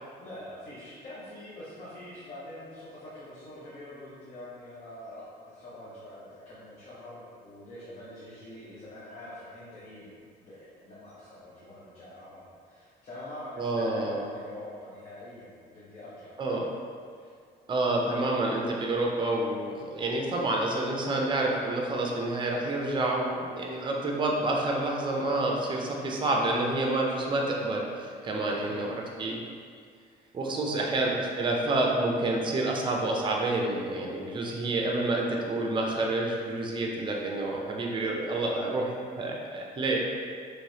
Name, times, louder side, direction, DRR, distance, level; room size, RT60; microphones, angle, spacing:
voice 1, 0.2-10.1 10.4-16.3 17.1-17.3 18.1-18.2 28.5-28.8 30.7-31.0, left 1 dB, 45° left, -9 dB, 0.8 m, -44 dB
voice 2, 13.6-14.2 16.4-16.7 17.7-28.9 29.2-29.4 30.3-40.0, right 2 dB, 30° right, 0 dB, 0.5 m, -28 dB
3.1 x 3.0 x 2.7 m, 2.1 s
cardioid pair, 110°, 17 cm